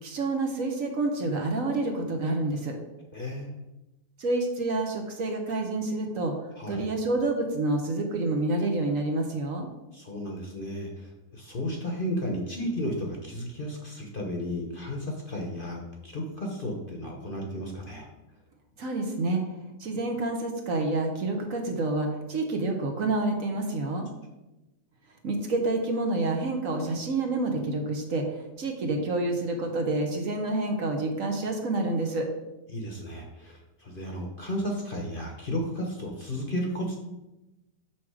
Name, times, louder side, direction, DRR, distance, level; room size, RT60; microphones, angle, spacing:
voice 1, 0.0-2.8 4.2-6.3 6.7-9.7 18.8-19.4 19.8-24.1 25.2-32.3, right 2 dB, 55° right, 3 dB, 1.3 m, -28 dB
voice 2, 3.1-3.5 6.6-6.9 9.9-18.1 32.7-37.0, equal, 40° left, 0 dB, 1.0 m, -33 dB
6.1 x 6.0 x 4.8 m, 1.0 s
omnidirectional pair, 1.7 m